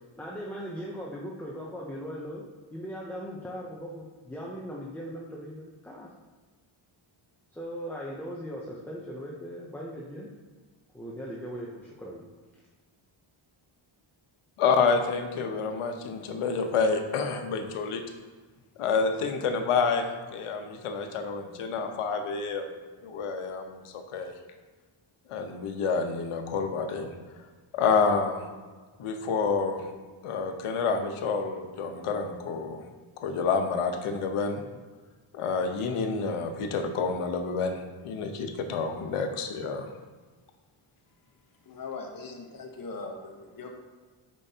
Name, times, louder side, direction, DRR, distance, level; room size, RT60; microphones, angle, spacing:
voice 1, 0.2-2.4 2.7-6.1 7.5-10.3 10.9-12.3, equal, 5° left, -4 dB, 0.4 m, -39 dB
voice 2, 14.6-18.0 18.8-22.7 23.0-24.4 25.3-27.1 27.7-28.5 29.0-29.9 30.2-32.9 33.2-34.6 35.3-39.9, left 5 dB, 85° left, 6 dB, 0.9 m, -28 dB
voice 3, 41.7-43.8, left 3 dB, 40° left, 2 dB, 1.0 m, -40 dB
8.7 x 5.5 x 2.8 m, 1.4 s
wide cardioid pair, 180°, 50 cm